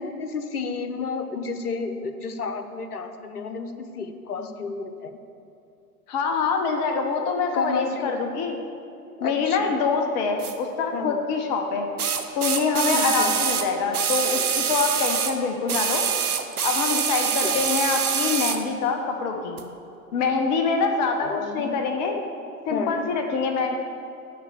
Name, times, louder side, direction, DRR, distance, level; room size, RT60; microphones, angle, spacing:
voice 1, 0.0-5.1 7.5-8.2 9.2-9.7 10.9-11.2 12.9-13.4 17.2-17.6 21.2-21.7 22.7-23.0, left 4 dB, 70° left, 8 dB, 1.0 m, -31 dB
voice 2, 6.1-8.6 9.2-11.9 12.4-16.1 16.6-19.6 20.1-22.2 22.7-23.8, left 4 dB, 30° left, 4 dB, 0.9 m, -25 dB
sound 1, 10.4-10.5 12.0-15.4 15.7-18.6 19.6-19.7, right 7 dB, 70° right, 0.9 m, -25 dB
11.0 x 4.3 x 7.8 m, 2.7 s
figure-of-eight pair, 105°, 46 cm